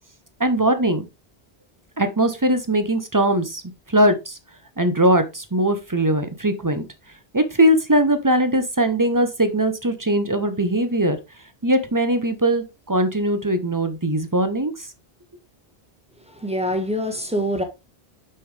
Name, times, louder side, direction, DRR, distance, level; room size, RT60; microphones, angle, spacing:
voice 1, 0.4-1.1 2.0-3.6 3.9-4.4 4.8-6.9 7.3-11.2 11.6-14.9, right 1 dB, 20° right, 0.7 m, -20 dB
voice 2, 16.3-17.6, equal, 5° right, 1.2 m, -25 dB
6.1 x 5.7 x 3.3 m
omnidirectional pair, 1.0 m